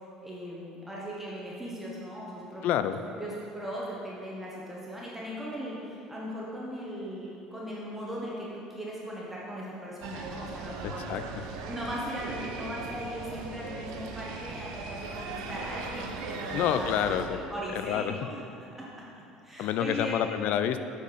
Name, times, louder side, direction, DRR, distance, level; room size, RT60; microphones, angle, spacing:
voice 1, 0.2-2.6 3.2-11.0 11.6-18.4 18.7-18.9 19.4-20.2, equal, 5° right, -6 dB, 1.4 m, -38 dB
voice 2, 2.6-3.0 10.8-11.2 16.5-17.4 17.7-18.3 19.6-20.8, left 10 dB, 60° left, 10 dB, 0.4 m, -28 dB
sound 1, 10.0-17.3, right 4 dB, 75° right, 0.7 m, -39 dB
8.1 x 4.3 x 5.0 m, 2.9 s
hypercardioid pair, 65°, 3 cm